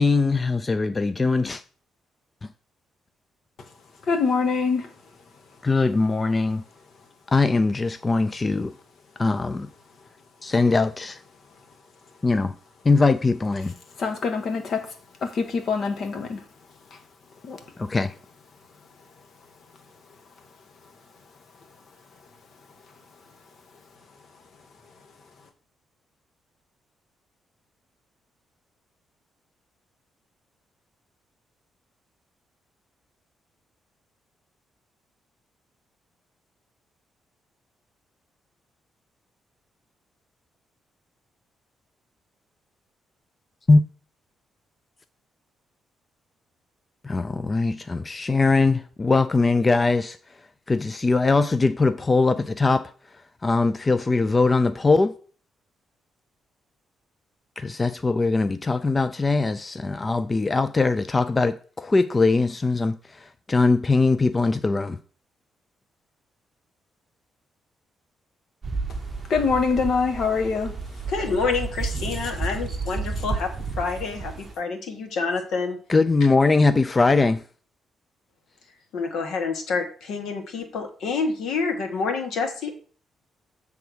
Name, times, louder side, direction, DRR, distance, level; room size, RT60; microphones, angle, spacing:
voice 1, 0.0-1.6 5.6-6.6 7.3-8.7 9.2-9.7 10.4-11.2 12.2-12.5 12.8-13.7 17.8-18.1 43.7-43.8 47.0-50.2 50.7-52.9 53.4-55.1 57.6-65.0 75.9-77.4, left 3 dB, 25° left, 0.4 m, -21 dB
voice 2, 4.1-4.9 14.0-14.9 15.2-16.4 17.4-17.6 69.3-70.7, left 5 dB, 55° left, 1.4 m, -24 dB
sound 1, 68.6-74.5, right 4 dB, 30° right, 0.8 m, -32 dB
voice 3, 71.1-75.8 78.9-82.7, left 4 dB, 80° left, 1.5 m, -28 dB
8.1 x 3.5 x 6.2 m
cardioid pair, 105°, 0 cm